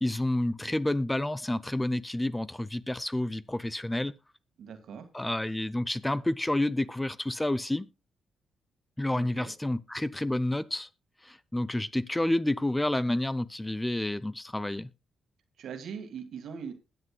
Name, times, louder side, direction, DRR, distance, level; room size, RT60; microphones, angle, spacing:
voice 1, 0.0-4.1 5.1-7.9 9.0-10.9 11.2-14.9, left 1 dB, 15° left, 0.6 m, -29 dB
voice 2, 4.6-5.1 9.1-9.5 15.6-16.7, right 7 dB, 70° right, 1.8 m, -41 dB
20.5 x 7.6 x 2.2 m
supercardioid pair, 50°, 0 cm